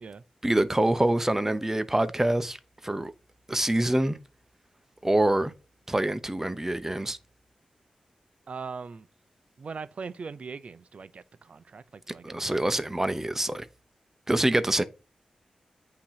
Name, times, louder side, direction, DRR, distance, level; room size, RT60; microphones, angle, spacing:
voice 1, 0.4-2.6 2.8-3.1 3.5-4.2 5.0-5.5 5.9-7.2 12.2-13.7 14.3-14.8, right 1 dB, 15° right, 0.8 m, -25 dB
voice 2, 8.5-9.1 9.6-12.6, right 5 dB, 60° right, 0.6 m, -40 dB
8.7 x 3.0 x 5.7 m
cardioid pair, 55°, 2 cm